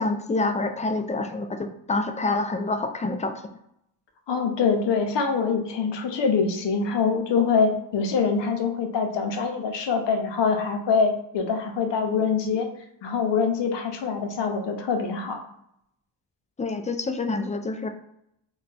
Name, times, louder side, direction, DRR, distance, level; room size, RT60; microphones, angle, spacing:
voice 1, 0.0-3.3 16.6-17.9, left 3 dB, 15° left, 7 dB, 0.4 m, -27 dB
voice 2, 4.3-12.7 13.0-15.4, left 5 dB, 65° left, 4 dB, 0.7 m, -24 dB
2.3 x 2.3 x 3.9 m, 0.77 s
cardioid pair, 50°, 46 cm